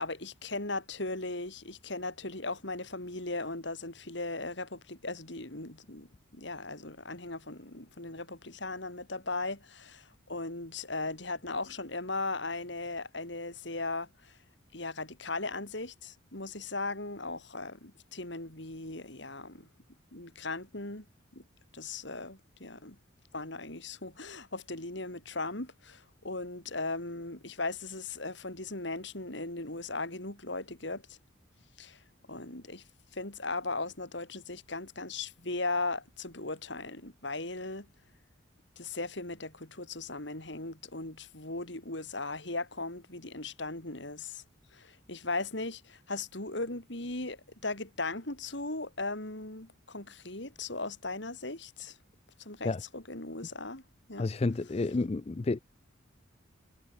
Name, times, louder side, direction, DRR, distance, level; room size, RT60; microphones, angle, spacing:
voice 1, 0.0-14.4 14.7-19.7 20.1-21.1 21.3-21.4 21.7-23.0 23.3-31.2 31.8-32.0 32.3-32.8 33.1-37.9 38.8-44.4 44.7-52.0 52.4-53.8 54.1-54.3, left 2 dB, 60° left, 4.0 m, -38 dB
voice 2, 54.2-55.6, left 3 dB, 30° left, 0.4 m, -30 dB
head